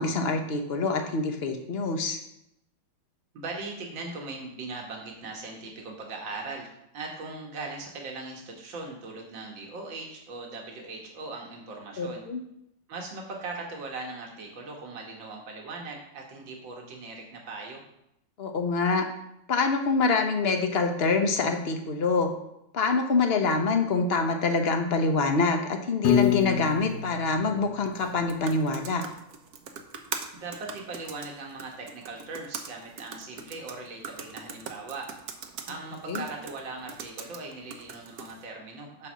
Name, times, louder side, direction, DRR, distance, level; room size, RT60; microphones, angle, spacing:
voice 1, 0.0-2.2 12.0-12.4 18.4-19.1 19.5-22.3 22.7-29.0 36.1-36.2, left 4 dB, 45° left, 5 dB, 0.9 m, -25 dB
voice 2, 3.3-12.2 12.9-17.8 30.3-35.1 35.7-39.1, right 3 dB, 85° right, 0 dB, 2.2 m, -39 dB
Piano, 26.0-28.3, left 9 dB, 70° left, 1.6 m, -27 dB
sound 1, 27.9-38.4, right 6 dB, 60° right, 1.2 m, -42 dB
9.8 x 4.2 x 6.2 m, 0.81 s
omnidirectional pair, 2.0 m